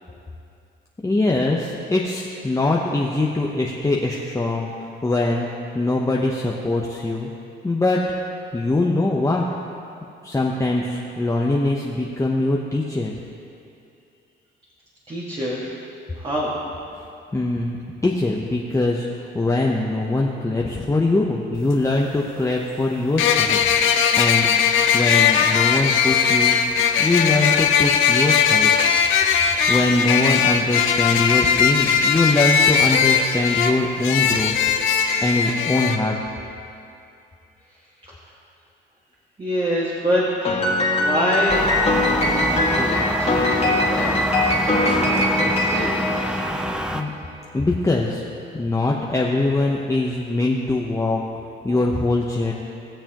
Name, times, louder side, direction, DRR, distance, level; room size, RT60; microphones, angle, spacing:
voice 1, 1.0-4.7 5.0-5.5 5.7-7.3 7.6-8.0 8.5-9.5 10.2-13.1 17.3-17.8 18.0-19.1 19.3-23.6 24.2-24.5 24.9-26.5 27.0-28.7 29.7-34.5 35.2-36.1 46.9-47.1 47.5-48.2 48.5-51.2 51.6-52.5, left 2 dB, 15° left, -2 dB, 0.9 m, -22 dB
voice 2, 15.1-15.8 16.2-16.5 38.1-38.2 39.4-40.3 41.0-41.7 42.2-44.2 44.6-46.0, equal, 30° right, -6 dB, 1.9 m, -26 dB
sound 1, 21.5-21.6 23.2-36.0, left 7 dB, 85° left, 0.7 m, -19 dB
Piano, 40.4-47.0, left 1 dB, 30° left, 1.7 m, -22 dB
sound 2, 41.5-47.0, equal, 5° right, 0.6 m, -26 dB
20.0 x 6.8 x 3.0 m, 2.6 s
cardioid pair, 90°, 20 cm